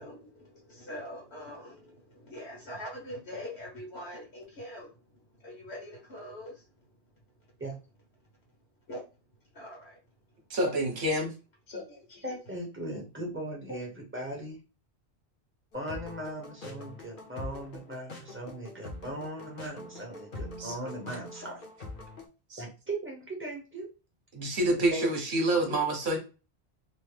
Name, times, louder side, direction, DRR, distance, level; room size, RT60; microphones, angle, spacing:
voice 1, 0.0-6.6 8.9-9.0 9.5-10.0 11.7-12.4 13.7-13.8, left 1 dB, 70° left, 1.3 m, -43 dB
voice 2, 10.5-11.3 20.6-20.7 22.5-22.6 24.3-26.2, right 1 dB, 50° right, 1.1 m, -27 dB
voice 3, 12.2-14.6 15.7-21.6 22.6-23.9 24.9-25.1 25.7-25.8, right 1 dB, 10° right, 0.8 m, -38 dB
sound 1, 15.7-22.3, left 2 dB, 55° left, 0.9 m, -44 dB
3.0 x 2.1 x 3.2 m
omnidirectional pair, 1.1 m